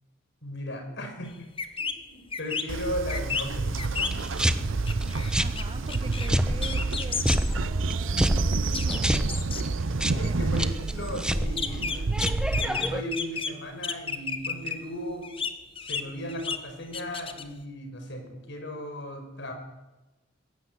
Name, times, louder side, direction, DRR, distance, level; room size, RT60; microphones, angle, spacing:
voice 1, 0.4-1.4 2.1-3.8 10.0-12.0 12.6-15.4 15.8-19.5, equal, 65° left, 6 dB, 5.4 m, -36 dB
sound 1, 1.2-1.3 1.6-2.0 2.3-2.7 3.1-4.4 4.9-5.6 5.9-6.3 6.6-7.5 7.9-8.0 8.7-9.6 11.6-13.6 13.8-14.7 15.1-16.6 16.9-17.5, left 5 dB, 30° left, 1.4 m, -32 dB
Train, 2.7-12.7, right 3 dB, 75° right, 0.7 m, -29 dB
sound 2, 4.1-13.0, equal, 5° right, 0.9 m, -29 dB
voice 2, 5.4-9.5 10.2-10.6, right 2 dB, 30° right, 9 dB, 1.6 m, -43 dB
20.5 x 16.0 x 9.5 m, 1.1 s
head